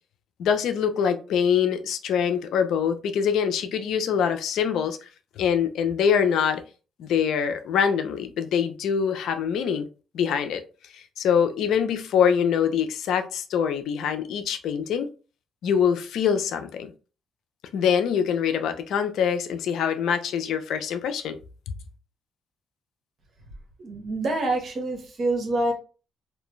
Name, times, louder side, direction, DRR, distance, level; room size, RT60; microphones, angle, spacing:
voice 1, 0.4-5.1 5.4-6.6 7.0-9.9 10.1-10.6 10.9-15.1 15.6-16.9 17.7-21.4, left 7 dB, 80° left, 0.4 m, -24 dB
voice 2, 23.8-25.7, right 2 dB, 50° right, 1.0 m, -26 dB
2.5 x 2.2 x 3.0 m
cardioid pair, 90°, 0 cm